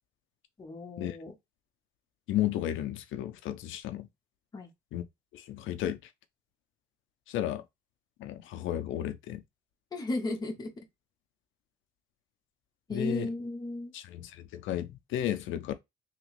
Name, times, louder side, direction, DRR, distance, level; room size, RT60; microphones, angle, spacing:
voice 1, 0.6-1.3 4.5-4.7 9.9-10.7 12.9-13.9, left 2 dB, 20° left, 0.7 m, -34 dB
voice 2, 2.3-4.1 4.9-5.0 5.3-6.0 7.3-7.6 8.2-9.4 12.9-13.3 13.9-15.7, left 12 dB, 85° left, 0.5 m, -33 dB
3.0 x 2.8 x 2.9 m
cardioid pair, 175°, 20 cm